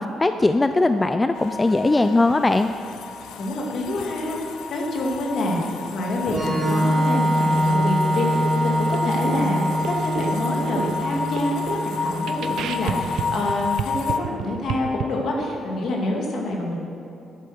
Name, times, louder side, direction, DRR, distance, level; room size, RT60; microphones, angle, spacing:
voice 1, 0.0-2.7, left 2 dB, 20° left, 9 dB, 0.4 m, -20 dB
sound 1, 1.3-14.2, left 6 dB, 80° left, 0.6 m, -33 dB
voice 2, 3.4-4.4 4.7-16.8, left 1 dB, 65° left, -1 dB, 2.5 m, -27 dB
Organ, 6.3-13.8, equal, 30° right, 3.3 m, -24 dB
sound 2, 7.6-15.0, right 8 dB, 75° right, 0.6 m, -32 dB
11.0 x 8.3 x 6.6 m, 2.8 s
cardioid pair, 90°, 0 cm